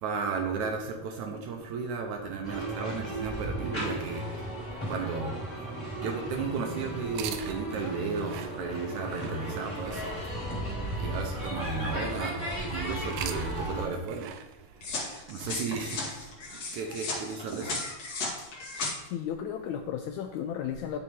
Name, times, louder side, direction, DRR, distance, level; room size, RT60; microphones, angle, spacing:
voice 1, 0.0-4.3 4.9-5.6 6.0-10.1 11.0-12.4 12.7-14.3 15.3-16.3 16.7-17.8, right 5 dB, 75° right, 3 dB, 2.1 m, -34 dB
sound 1, 2.4-13.8, right 1 dB, 10° left, 2.3 m, -35 dB
sound 2, 7.1-12.4 12.9-16.9, right 10 dB, 90° right, 2.3 m, -45 dB
sound 3, 14.8-18.9, left 3 dB, 55° left, 2.7 m, -35 dB
voice 2, 19.1-21.0, left 9 dB, 85° left, 6 dB, 1.7 m, -34 dB
9.8 x 6.4 x 3.5 m, 0.97 s
omnidirectional pair, 3.8 m